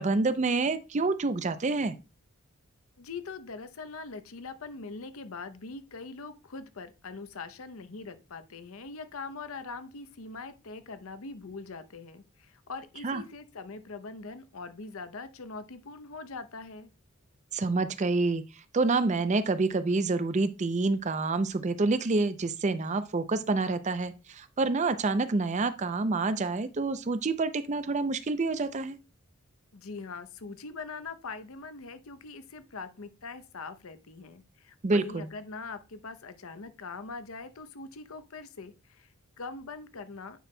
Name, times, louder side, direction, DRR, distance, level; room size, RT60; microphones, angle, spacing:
voice 1, 0.0-2.0 13.0-13.2 17.5-18.4 18.7-29.0 34.8-35.3, right 3 dB, 30° right, 0.5 m, -27 dB
voice 2, 3.0-16.9 29.7-40.5, left 4 dB, 70° left, 0.7 m, -42 dB
9.2 x 5.8 x 2.2 m
head